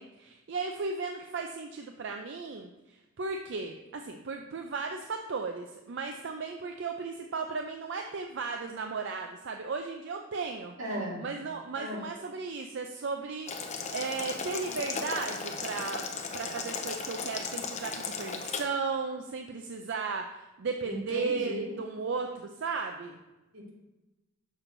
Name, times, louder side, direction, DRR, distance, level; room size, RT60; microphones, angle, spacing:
voice 1, 0.0-10.7 11.2-16.0 16.3-23.2, right 4 dB, 60° right, 4 dB, 0.5 m, -35 dB
voice 2, 10.8-11.2 11.8-12.1 20.8-21.8 23.5-23.7, right 1 dB, 85° right, -3 dB, 2.3 m, -36 dB
Boiling, 13.5-18.6, left 5 dB, 35° left, 0.7 m, -36 dB
6.3 x 3.8 x 5.9 m, 1.0 s
head